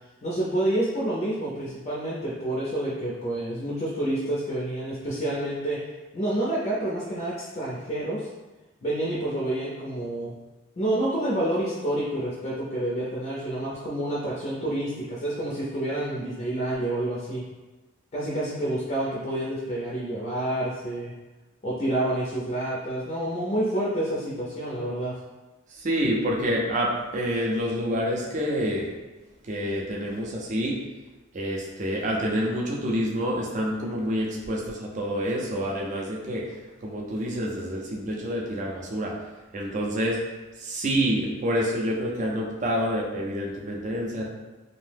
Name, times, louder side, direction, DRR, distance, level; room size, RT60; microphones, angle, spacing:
voice 1, 0.2-5.8 6.1-8.3 8.8-10.3 10.8-17.4 18.1-21.1 21.6-25.2, right 1 dB, 35° left, -6 dB, 0.5 m, -28 dB
voice 2, 25.7-28.9 29.5-30.8 31.3-36.4 36.8-39.1 39.5-40.2 40.6-44.3, equal, 40° right, -2 dB, 0.4 m, -27 dB
2.6 x 2.0 x 3.3 m, 1.1 s
head